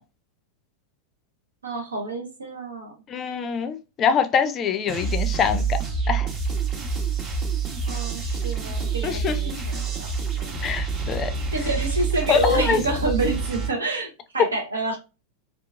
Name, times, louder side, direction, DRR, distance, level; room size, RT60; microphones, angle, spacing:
voice 1, 1.6-3.0 7.8-10.7 11.5-15.0, right 2 dB, 75° right, 0.7 m, -28 dB
voice 2, 3.1-5.8 6.1-6.3 9.0-9.6 10.6-11.3 12.3-12.8, left 6 dB, 30° left, 0.4 m, -24 dB
sound 1, 4.9-13.7, right 5 dB, 30° right, 0.8 m, -27 dB
2.8 x 2.4 x 2.3 m
figure-of-eight pair, 90°, 0 cm